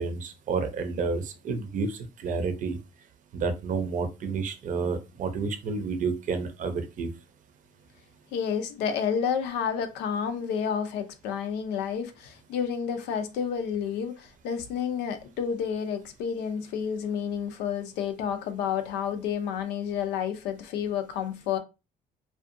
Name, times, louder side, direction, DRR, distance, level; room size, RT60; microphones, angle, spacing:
voice 1, 0.0-2.8 3.3-7.1, right 4 dB, 50° right, 0.6 m, -30 dB
voice 2, 8.3-21.6, left 7 dB, 85° left, 0.5 m, -30 dB
2.7 x 2.3 x 2.5 m
cardioid pair, 110°, 17 cm